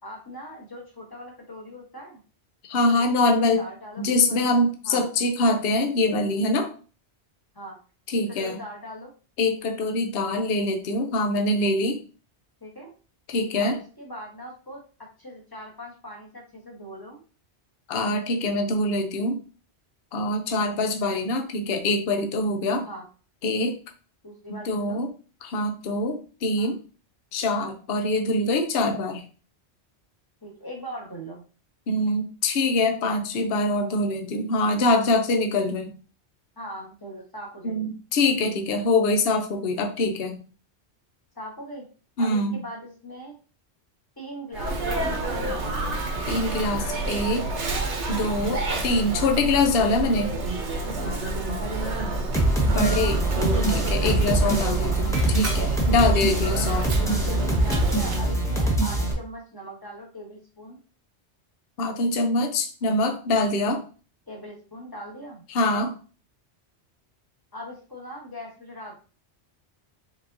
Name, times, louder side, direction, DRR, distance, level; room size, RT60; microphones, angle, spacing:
voice 1, 0.0-2.2 3.0-5.1 7.5-7.8 8.1-9.1 12.6-12.9 13.6-17.2 20.6-20.7 22.9-23.0 24.2-25.0 26.5-26.7 30.4-31.4 36.6-37.9 41.3-41.9 42.2-43.3 44.2-45.9 51.5-52.4 54.6-54.8 56.3-56.6 57.6-60.8 64.3-65.4 67.5-69.0, equal, 20° left, -1 dB, 1.2 m, -40 dB
voice 2, 2.7-3.6 4.0-6.7 8.1-8.6 9.4-12.0 13.3-13.8 17.9-19.4 20.1-22.9 23.4-23.8 24.5-25.1 25.4-26.8 27.3-29.2 31.9-35.9 37.6-40.4 42.2-42.6 46.3-47.5 48.1-50.4 52.6-56.9 61.8-63.8 65.5-65.9, left 2 dB, 60° left, 5 dB, 0.9 m, -24 dB
Sneeze, 44.5-58.3, right 2 dB, 75° right, 1.2 m, -29 dB
sound 1, 52.3-59.1, right 2 dB, 5° left, 0.9 m, -23 dB
5.1 x 3.8 x 2.7 m, 0.37 s
omnidirectional pair, 1.2 m